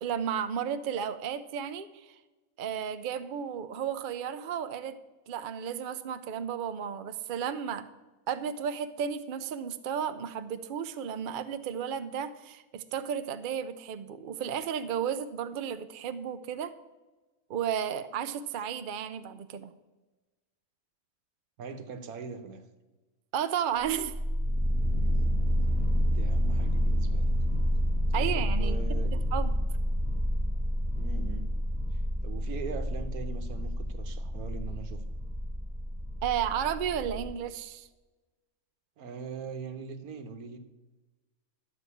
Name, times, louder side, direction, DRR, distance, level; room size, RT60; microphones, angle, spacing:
voice 1, 0.0-2.2 2.6-5.0 5.3-7.9 8.3-16.7 17.5-19.7 23.3-24.1 28.1-28.8 29.1-29.6 36.2-37.9, right 8 dB, 60° right, 0.5 m, -33 dB
voice 2, 21.6-22.6 25.1-25.2 26.1-27.3 28.1-29.1 30.9-31.5 31.9-35.1 39.0-40.6, right 5 dB, 80° right, 1.4 m, -41 dB
sound 1, 23.9-37.3, equal, 5° right, 1.0 m, -29 dB
11.5 x 5.4 x 8.4 m
omnidirectional pair, 1.6 m